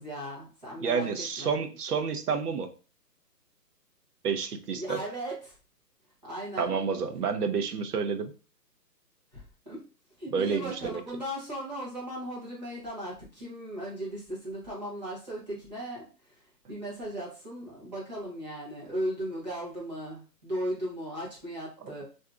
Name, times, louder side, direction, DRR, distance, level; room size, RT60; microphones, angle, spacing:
voice 1, 0.0-1.6 4.6-5.6 6.2-6.8 9.3-9.8 10.2-22.0, equal, 25° right, -7 dB, 0.8 m, -37 dB
voice 2, 0.8-2.7 4.2-5.0 6.6-8.3 10.3-11.0, right 6 dB, 65° right, 7 dB, 0.6 m, -29 dB
3.5 x 2.6 x 2.3 m, 0.35 s
hypercardioid pair, 170°, 50 cm